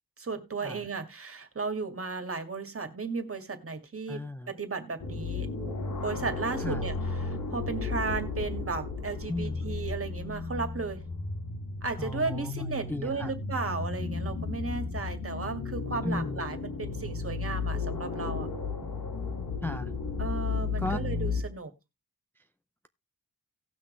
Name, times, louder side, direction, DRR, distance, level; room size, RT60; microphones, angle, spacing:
voice 1, 0.2-5.8 6.0-11.0 11.8-18.5 20.2-21.7, right 4 dB, 40° right, 2.0 m, -35 dB
voice 2, 4.1-4.5 6.6-6.8 9.3-9.7 12.0-13.3 16.0-16.4 19.6-19.9 20.8-21.0, left 2 dB, 5° left, 0.5 m, -35 dB
sound 1, 5.0-21.4, left 4 dB, 90° left, 3.7 m, -34 dB
17.5 x 6.1 x 3.2 m
wide cardioid pair, 125°, 35 cm